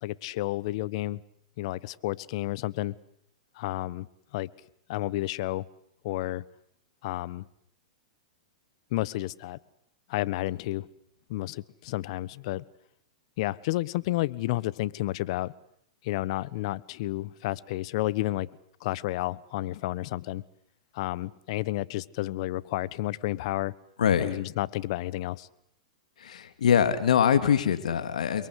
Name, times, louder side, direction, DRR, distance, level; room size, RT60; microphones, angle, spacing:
voice 1, 0.0-1.2 1.6-2.9 3.5-4.1 4.3-4.5 4.9-5.7 6.0-6.4 7.0-7.5 8.9-9.6 10.1-10.9 11.3-12.6 13.4-15.5 16.0-18.5 18.8-20.4 20.9-23.7 24.2-25.5, left 17 dB, 55° left, 18 dB, 1.2 m, -31 dB
voice 2, 24.0-24.3 26.2-28.5, left 8 dB, 80° left, 9 dB, 2.8 m, -23 dB
29.5 x 22.5 x 8.3 m, 0.72 s
hypercardioid pair, 120°, 4 cm